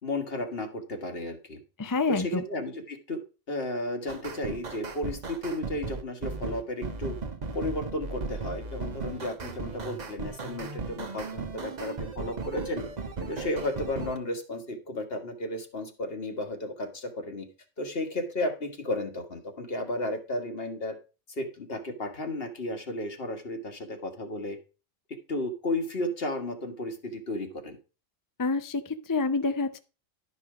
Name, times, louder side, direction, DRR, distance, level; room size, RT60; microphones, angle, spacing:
voice 1, 0.0-1.6 2.1-3.2 3.5-7.2 7.5-12.9 13.2-17.5 17.8-21.0 21.3-24.6 25.3-27.8, left 1 dB, 50° left, 7 dB, 1.6 m, -33 dB
voice 2, 1.8-2.4 28.4-29.8, left 3 dB, 30° left, 10 dB, 0.3 m, -27 dB
sound 1, 4.1-14.2, right 4 dB, 35° right, 0.9 m, -36 dB
11.5 x 5.5 x 4.8 m, 0.33 s
omnidirectional pair, 1.3 m